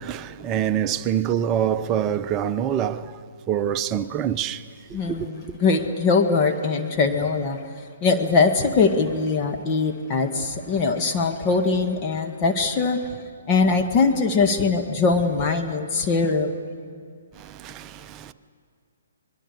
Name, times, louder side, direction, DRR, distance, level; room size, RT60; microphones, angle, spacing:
voice 1, 0.0-3.1 3.5-4.6 5.1-5.2 17.4-18.3, right 9 dB, 25° right, 0.8 m, -25 dB
voice 2, 4.9-7.6 8.0-13.1 13.5-16.5, left 4 dB, 30° left, 1.6 m, -22 dB
26.5 x 21.0 x 6.8 m
figure-of-eight pair, 130°, 0 cm